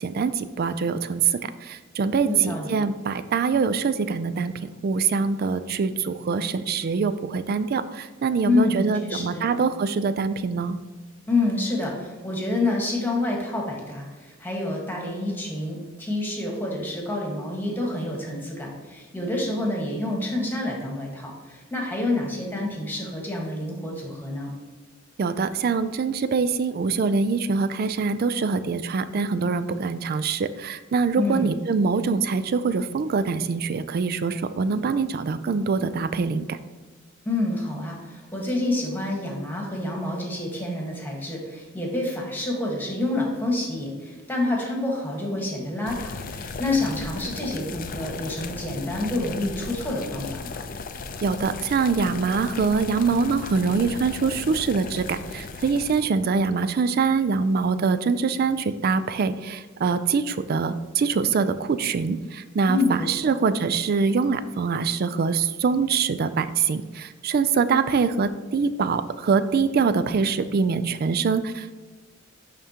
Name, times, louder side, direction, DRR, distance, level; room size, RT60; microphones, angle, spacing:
voice 1, 0.0-4.5 4.8-10.8 25.2-36.6 51.2-71.8, right 5 dB, 50° right, 12 dB, 0.4 m, -24 dB
voice 2, 2.2-2.7 8.4-9.4 11.3-24.5 31.2-31.6 37.2-50.6 62.7-63.3, left 2 dB, 10° left, -1 dB, 1.4 m, -28 dB
sound 1, 45.9-56.0, left 4 dB, 45° left, 0.5 m, -36 dB
10.5 x 3.6 x 2.9 m, 1.4 s
head